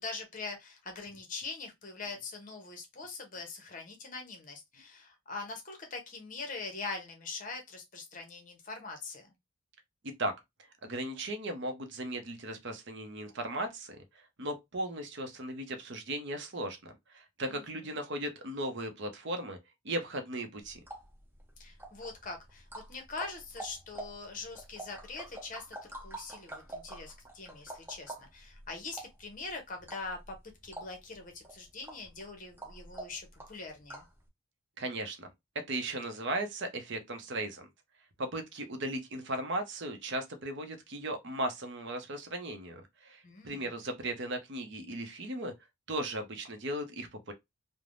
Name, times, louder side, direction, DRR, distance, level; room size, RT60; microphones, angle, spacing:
voice 1, 0.0-9.3 17.5-17.6 21.6-30.4 30.6-34.0 43.2-43.7, left 3 dB, 35° left, 0.7 m, -43 dB
voice 2, 10.8-19.6 19.8-20.8 34.8-37.7 38.2-45.5 45.9-47.3, right 1 dB, 55° right, 0.6 m, -37 dB
sound 1, 20.6-34.2, right 2 dB, 10° right, 0.5 m, -48 dB
3.3 x 2.1 x 2.5 m
head